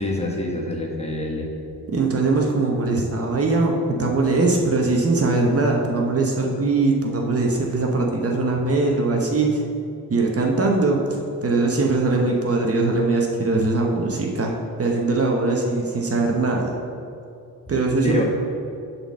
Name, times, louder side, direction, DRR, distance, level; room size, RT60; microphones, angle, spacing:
voice 1, 0.0-1.5 18.0-18.2, left 2 dB, 15° left, -1 dB, 1.3 m, -26 dB
voice 2, 1.9-9.6 10.1-16.7 17.7-18.2, right 3 dB, 40° right, 0 dB, 1.1 m, -21 dB
7.8 x 4.3 x 6.3 m, 2.5 s
cardioid pair, 90°, 38 cm